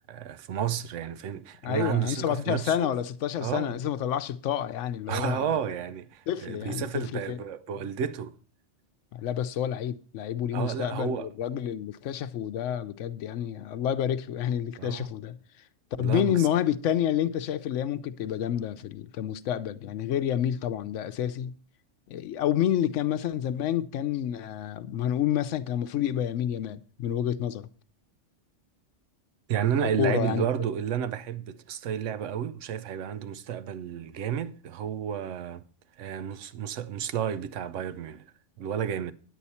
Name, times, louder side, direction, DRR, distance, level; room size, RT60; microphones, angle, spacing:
voice 1, 0.0-2.9 3.4-3.7 5.1-8.4 10.5-11.3 14.8-15.1 16.0-16.5 29.5-35.7 36.0-38.2 38.6-39.1, right 9 dB, 85° right, 1.0 m, -31 dB
voice 2, 1.6-5.5 6.3-7.4 9.1-15.4 16.0-21.5 22.1-27.7 30.0-30.5, left 10 dB, 80° left, 0.9 m, -29 dB
9.9 x 8.3 x 4.2 m
omnidirectional pair, 1.2 m